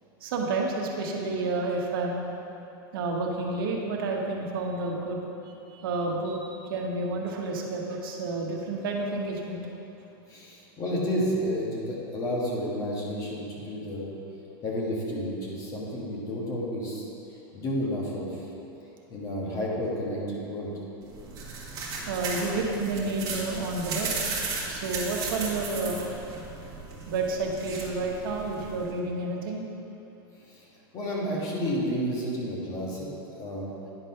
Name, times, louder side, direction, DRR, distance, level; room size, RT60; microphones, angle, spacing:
voice 1, 0.2-2.2 2.9-5.2 5.7-9.6 22.0-24.1 24.7-26.0 27.1-29.6, right 3 dB, 70° right, 0 dB, 1.2 m, -30 dB
voice 2, 10.3-14.1 14.6-17.1 17.5-18.4 19.1-20.7 30.5-30.6 30.9-33.7, equal, 30° left, -4 dB, 1.5 m, -31 dB
sound 1, 21.0-28.9, right 4 dB, 30° right, 1.5 m, -35 dB
9.8 x 4.1 x 5.5 m, 2.9 s
supercardioid pair, 160°, 12 cm